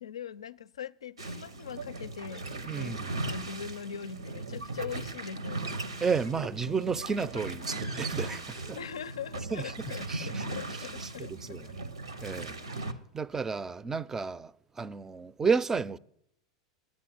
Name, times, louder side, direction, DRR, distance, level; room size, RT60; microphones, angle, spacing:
voice 1, 0.0-3.0 3.3-5.9 8.8-11.8, left 7 dB, 80° left, 0.4 m, -41 dB
sound 1, 1.2-12.9, right 2 dB, 90° right, 1.0 m, -38 dB
voice 2, 2.7-3.1 6.0-8.8 9.5-9.7 10.1-10.4 11.0-11.9 12.2-12.6 13.1-16.0, right 5 dB, 15° right, 0.4 m, -32 dB
10.5 x 8.4 x 7.8 m
hypercardioid pair, 95°, 3 cm